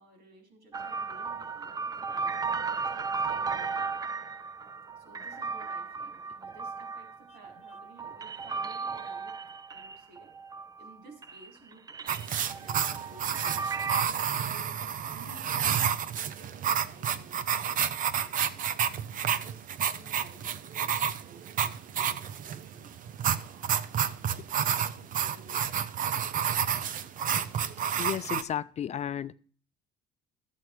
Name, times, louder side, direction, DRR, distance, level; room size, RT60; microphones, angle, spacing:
voice 1, 0.0-4.0 5.0-9.3 9.7-10.3 10.8-13.7 14.2-18.7 19.2-22.9 23.4-24.7 24.9-26.0 26.8-27.0, right 2 dB, 70° right, 3 dB, 4.7 m, -55 dB
sound 1, 0.7-11.0 11.2-14.0, right 5 dB, 20° right, 0.4 m, -35 dB
sound 2, 12.1-28.4, right 8 dB, 55° right, 0.7 m, -30 dB
voice 2, 27.9-29.3, left 9 dB, 40° left, 14 dB, 0.5 m, -33 dB
12.5 x 7.5 x 4.7 m, 0.43 s
cardioid pair, 110°, 17 cm